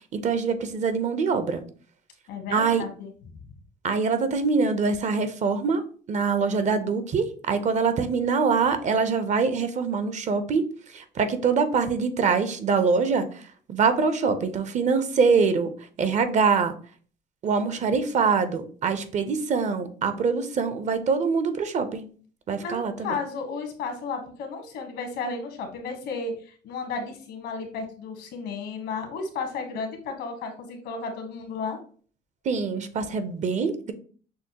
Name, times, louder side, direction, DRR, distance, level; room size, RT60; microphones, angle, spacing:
voice 1, 0.1-1.6 2.5-2.8 3.8-5.8 6.1-10.7 10.9-13.4 13.7-15.7 16.0-16.7 17.4-22.0 22.5-23.1 32.4-33.9, right 5 dB, 45° right, 10 dB, 0.6 m, -24 dB
voice 2, 2.3-3.1 22.6-31.8, left 4 dB, 80° left, 5 dB, 1.1 m, -33 dB
6.1 x 2.1 x 2.8 m, 0.43 s
cardioid pair, 110°, 17 cm